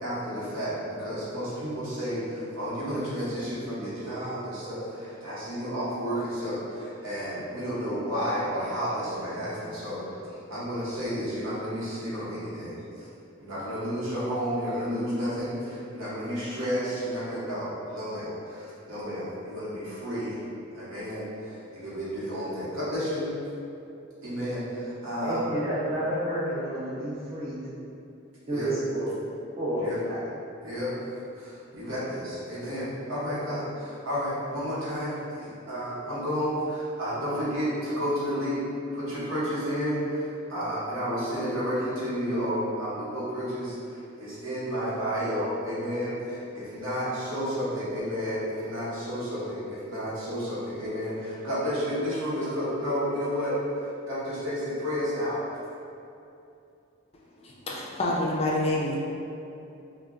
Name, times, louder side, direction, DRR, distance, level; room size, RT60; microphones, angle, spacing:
voice 1, 0.0-10.2 10.5-13.1 13.4-20.4 20.7-23.3 24.2-25.4 28.5-28.7 29.8-30.0 30.6-30.9 31.4-38.6 38.9-55.4, equal, 70° right, -10 dB, 1.0 m, -31 dB
voice 2, 25.2-27.8 28.5-29.1 29.6-30.2, right 1 dB, 30° right, -8 dB, 0.5 m, -30 dB
voice 3, 57.4-59.0, left 1 dB, 30° left, -4 dB, 0.3 m, -27 dB
2.3 x 2.1 x 3.5 m, 2.8 s
head